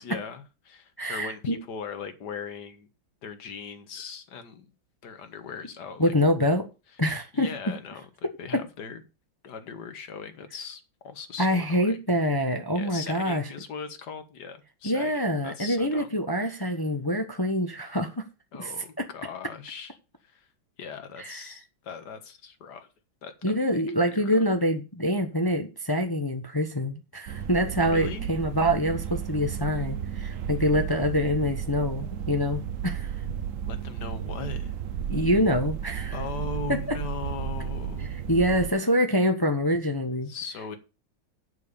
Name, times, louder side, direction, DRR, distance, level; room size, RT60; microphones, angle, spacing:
voice 1, 0.0-2.9 3.2-4.7 5.0-6.1 7.3-9.0 9.4-12.0 12.7-15.1 15.4-16.1 16.5-16.6 18.5-20.0 20.2-20.5 20.8-22.9 23.2-23.3 23.7-24.5 27.9-28.3 33.3-33.4 33.7-34.8 36.1-38.2 40.3-40.8, left 6 dB, 60° left, 1.9 m, -39 dB
voice 2, 1.0-1.6 6.0-6.7 7.0-7.5 8.2-8.6 11.4-13.4 14.8-18.2 18.5-18.7 19.0-19.1 21.2-21.4 23.4-33.1 35.1-36.1 36.7-37.0 38.3-40.3, equal, 15° left, 0.9 m, -25 dB
sound 1, 27.3-38.7, right 8 dB, 65° right, 0.8 m, -33 dB
8.3 x 7.1 x 6.9 m
omnidirectional pair, 2.1 m